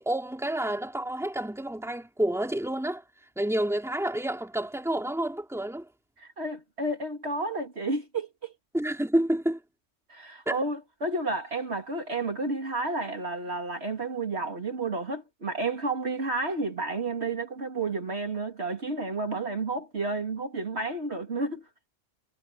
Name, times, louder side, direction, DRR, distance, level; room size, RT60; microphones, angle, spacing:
voice 1, 0.0-3.0 3.4-5.9 8.7-9.6 10.5-10.6, right 1 dB, ahead, 2.8 m, -29 dB
voice 2, 6.2-8.5 10.1-21.6, right 3 dB, 55° right, 2.7 m, -31 dB
omnidirectional pair, 1.3 m